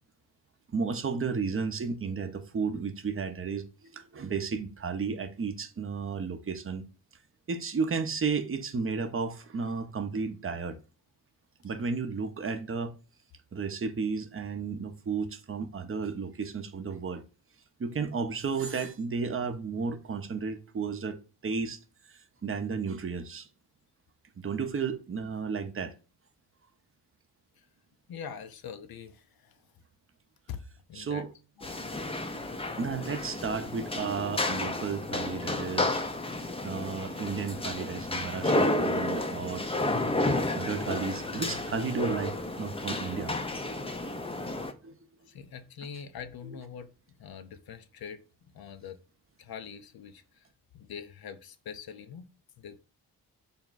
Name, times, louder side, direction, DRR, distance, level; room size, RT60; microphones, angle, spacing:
voice 1, 0.7-3.7 3.9-6.9 7.5-10.8 11.6-12.9 13.5-17.2 17.8-21.8 22.1-23.5 24.4-25.9 30.9-31.3 32.8-35.9 36.6-39.6 40.5-43.3 44.8-45.0 46.4-46.6, right 5 dB, 30° right, 0.7 m, -33 dB
voice 2, 28.1-29.5 30.5-30.6 30.9-31.2 31.7-31.8 45.3-46.9 47.2-48.2 48.5-49.0 49.4-50.4 50.7-52.3 52.6-52.8, left 7 dB, 55° left, 0.6 m, -43 dB
sound 1, 31.6-44.7, left 2 dB, 15° left, 0.5 m, -31 dB
3.5 x 2.2 x 4.0 m
supercardioid pair, 40°, 45 cm